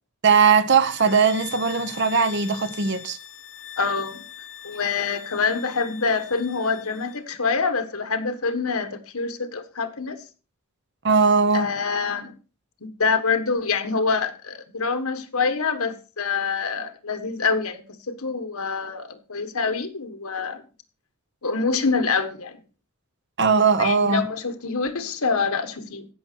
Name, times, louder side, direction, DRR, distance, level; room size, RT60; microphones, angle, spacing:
voice 1, 0.2-3.2 11.0-11.7 23.4-24.2, right 5 dB, 55° right, 0.9 m, -19 dB
sound 1, 0.8-7.2, left 8 dB, 60° left, 1.2 m, -42 dB
voice 2, 3.8-4.2 4.6-10.2 11.5-12.3 12.8-20.6 21.4-22.6 23.8-26.1, left 4 dB, 80° left, 1.5 m, -26 dB
15.5 x 6.1 x 4.5 m
head